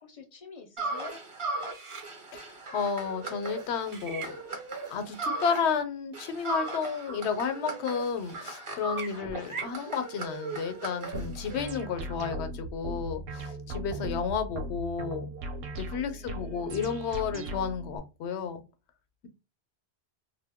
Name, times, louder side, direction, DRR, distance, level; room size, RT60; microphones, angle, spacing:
voice 1, 0.0-1.2 16.1-16.8, left 5 dB, 50° left, 0.4 m, -48 dB
sound 1, 0.8-5.8 6.1-11.7, right 3 dB, 35° right, 0.6 m, -37 dB
voice 2, 2.3-4.4 4.9-15.3 15.8-18.6, left 6 dB, 85° left, 0.9 m, -32 dB
sound 2, 11.1-18.0, right 1 dB, 70° right, 0.8 m, -38 dB
2.2 x 2.0 x 3.3 m
omnidirectional pair, 1.1 m